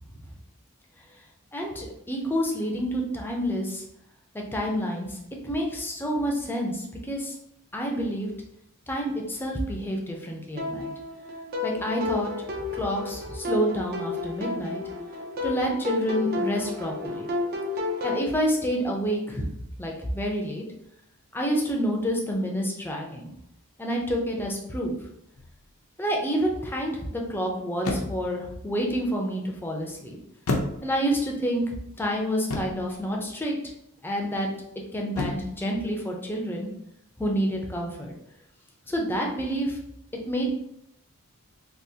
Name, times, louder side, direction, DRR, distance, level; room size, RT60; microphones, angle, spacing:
voice 1, 1.5-3.8 4.5-5.2 5.4-7.4 7.7-8.3 8.9-10.9 11.6-12.3 12.8-14.8 15.4-17.3 18.0-19.5 19.8-20.7 21.3-23.3 23.8-24.9 26.0-30.2 30.8-33.5 34.0-34.5 34.9-36.7 37.2-38.1 38.9-39.8 40.3-40.6, equal, 10° left, 0 dB, 0.5 m, -28 dB
sound 1, 10.6-18.2, left 3 dB, 45° right, 0.5 m, -31 dB
sound 2, 25.4-25.7 27.8-28.4 30.5-31.2 32.5-33.0 35.2-35.6, left 2 dB, 80° left, 0.6 m, -31 dB
3.6 x 2.4 x 2.7 m, 0.77 s
head